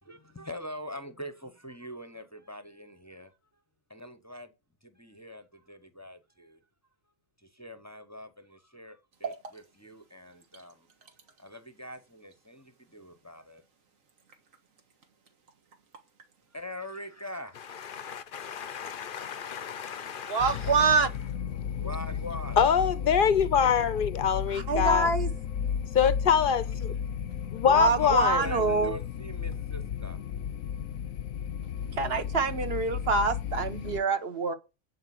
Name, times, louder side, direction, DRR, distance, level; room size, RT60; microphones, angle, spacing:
voice 1, 0.0-3.3 3.9-4.5 4.8-6.6 7.4-10.9 11.4-13.6 16.5-18.0 21.8-22.6 27.4-27.6 28.0-30.2, left 1 dB, 15° left, 0.7 m, -43 dB
sound 1, 9.1-19.0, right 5 dB, 80° right, 1.8 m, -50 dB
voice 2, 17.8-20.6 22.6-25.1 25.9-27.0 27.5-28.5, left 7 dB, 50° left, 0.7 m, -25 dB
voice 3, 20.3-21.1 24.5-25.3 27.7-29.0 31.9-34.5, right 4 dB, 50° right, 1.3 m, -26 dB
sound 2, 20.4-34.0, left 8 dB, 80° left, 1.1 m, -34 dB
11.0 x 4.8 x 7.7 m
omnidirectional pair, 1.4 m